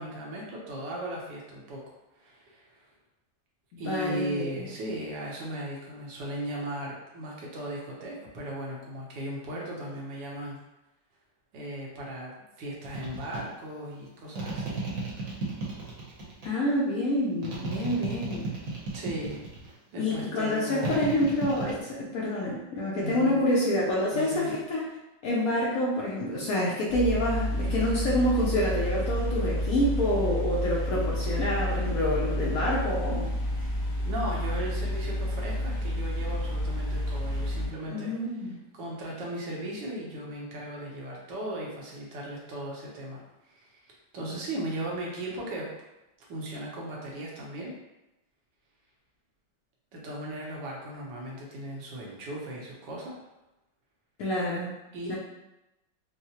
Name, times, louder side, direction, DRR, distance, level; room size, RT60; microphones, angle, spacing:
voice 1, 0.0-1.8 2.2-2.7 3.8-10.6 11.5-14.8 18.9-19.4 19.9-21.1 23.0-23.4 24.1-24.6 34.0-38.1 38.7-43.8 44.1-45.7 46.3-47.8 49.9-53.2 54.9-55.2, right 1 dB, 80° right, -3 dB, 1.5 m, -37 dB
voice 2, 3.8-4.7 16.4-18.5 20.0-24.9 25.2-33.3 37.8-38.5 54.2-54.7 55.1-55.2, left 1 dB, 65° left, -4 dB, 0.9 m, -27 dB
sound 1, 12.8-13.4 14.3-16.5 17.4-19.7 20.8-21.8, right 3 dB, 55° right, 1.2 m, -34 dB
sound 2, 26.9-37.7, left 1 dB, 40° left, 1.0 m, -30 dB
4.6 x 2.0 x 2.8 m, 0.95 s
omnidirectional pair, 1.9 m